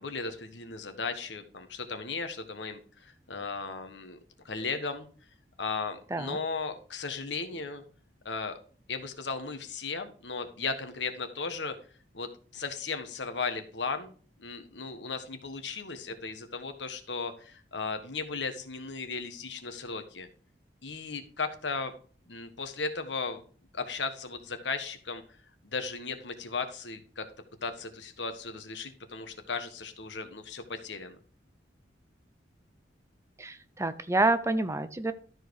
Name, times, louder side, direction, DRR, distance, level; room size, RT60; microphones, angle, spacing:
voice 1, 0.0-4.2 4.4-5.1 5.6-7.8 8.2-8.6 8.9-11.7 12.1-14.1 14.4-20.3 20.8-21.9 22.3-23.4 23.7-25.2 25.6-27.3 27.6-31.2, left 4 dB, 85° left, 8 dB, 1.4 m, -36 dB
voice 2, 33.4-35.1, right 2 dB, 15° right, 12 dB, 0.5 m, -28 dB
12.5 x 4.7 x 4.7 m, 0.42 s
head